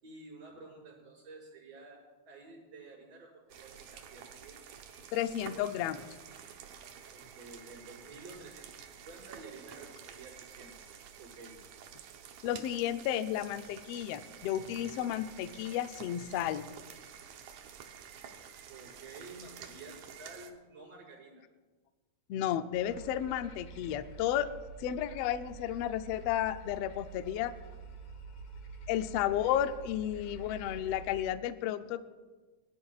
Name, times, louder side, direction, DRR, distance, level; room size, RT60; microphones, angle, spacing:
voice 1, 0.0-4.6 7.1-10.8 11.2-11.6 18.7-21.4, right 3 dB, 60° right, -10 dB, 6.4 m, -51 dB
sound 1, 3.5-20.5, right 8 dB, 75° right, 2.2 m, -50 dB
voice 2, 5.1-6.1 12.4-16.6 22.3-24.5 24.8-27.5 28.9-32.0, left 11 dB, 85° left, 10 dB, 1.3 m, -32 dB
sound 2, 22.7-31.2, right 4 dB, 55° left, 1.7 m, -48 dB
24.0 x 12.5 x 2.4 m, 1.3 s
omnidirectional pair, 3.5 m